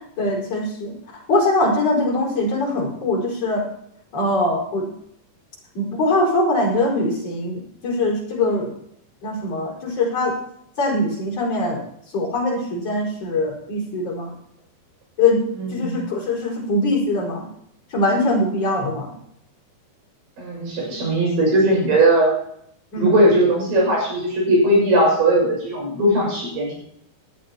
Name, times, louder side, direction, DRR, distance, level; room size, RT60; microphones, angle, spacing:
voice 1, 0.0-3.6 4.1-4.9 5.7-8.7 9.2-10.4 10.8-11.8 12.1-14.3 15.2-15.4 15.7-17.5 17.9-19.1 22.9-23.2, left 2 dB, 40° left, -2 dB, 6.0 m, -22 dB
voice 2, 15.6-16.0 20.4-22.4 23.0-26.7, right 1 dB, 85° right, -1 dB, 8.3 m, -18 dB
18.5 x 12.5 x 3.0 m, 0.71 s
omnidirectional pair, 4.6 m